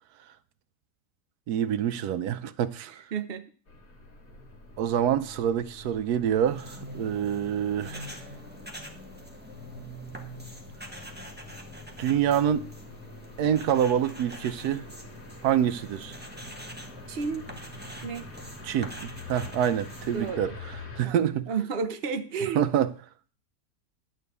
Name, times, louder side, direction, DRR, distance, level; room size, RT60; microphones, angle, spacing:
voice 1, 1.5-3.0 4.8-8.2 12.0-12.7 13.4-14.9 15.4-16.2 18.6-21.5 22.5-22.9, right 9 dB, 85° right, 1.2 m, -26 dB
voice 2, 3.1-3.5 17.1-17.4 18.0-18.3 20.1-20.5 21.0-21.2 21.5-22.7, right 5 dB, 45° right, 1.0 m, -31 dB
sound 1, 3.7-21.1, left 2 dB, 65° left, 2.4 m, -46 dB
sound 2, 6.4-20.3, equal, 5° right, 1.2 m, -44 dB
11.5 x 4.6 x 8.2 m
omnidirectional pair, 1.6 m